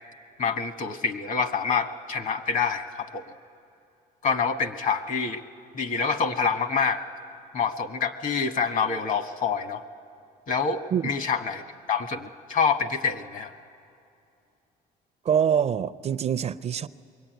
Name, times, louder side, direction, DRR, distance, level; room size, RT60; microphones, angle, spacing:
voice 1, 0.4-3.2 4.2-5.4 5.7-7.0 7.5-9.8 10.5-11.6 11.9-13.5, left 5 dB, 50° left, 8 dB, 1.4 m, -26 dB
voice 2, 15.2-16.9, right 8 dB, 40° right, 13 dB, 0.5 m, -24 dB
25.5 x 22.0 x 9.2 m, 2.6 s
cardioid pair, 110°, 17 cm